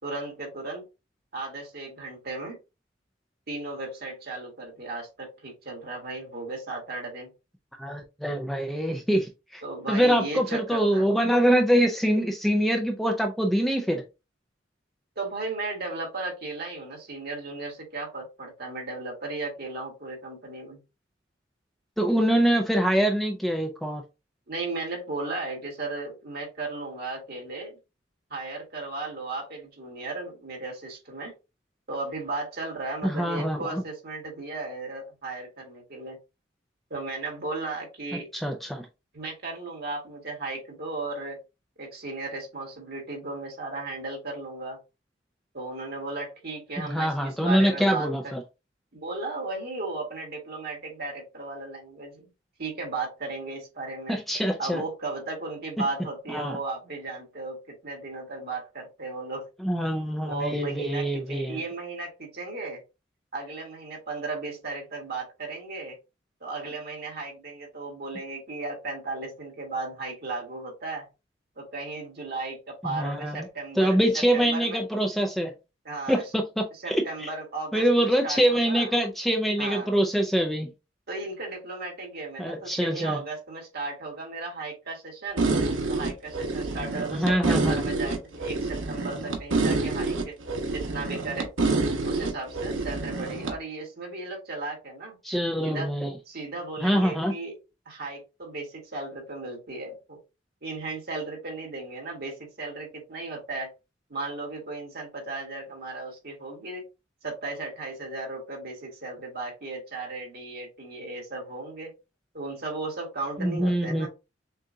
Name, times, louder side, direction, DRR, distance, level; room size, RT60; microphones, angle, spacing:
voice 1, 0.0-0.8 1.3-2.6 3.5-7.3 9.6-11.0 15.2-20.8 24.5-27.8 28.3-31.3 31.9-36.2 36.9-38.3 39.1-41.4 41.8-44.8 45.5-48.3 48.9-52.3 52.6-54.2 54.6-59.5 60.2-62.8 63.3-66.0 66.4-71.1 71.6-74.0 74.3-74.8 75.9-76.2 76.8-78.9 79.6-79.9 81.1-85.4 85.9-90.4 90.7-91.5 92.0-95.2 95.6-95.9 96.3-97.6 97.9-100.2 100.6-103.7 104.1-106.9 107.2-111.9 112.3-114.1, right 3 dB, 55° right, 1.9 m, -35 dB
voice 2, 7.8-9.6 9.9-14.0 22.0-24.0 33.0-33.8 38.3-38.9 46.8-48.4 54.1-54.8 56.3-56.6 59.6-61.6 72.9-73.5 73.8-75.5 76.1-77.3 77.7-80.7 82.4-83.2 87.1-87.8 95.2-96.1 96.8-97.3 113.4-114.1, equal, ahead, 0.4 m, -24 dB
sound 1, 85.4-93.5, right 3 dB, 80° right, 1.0 m, -27 dB
6.5 x 2.4 x 2.6 m
head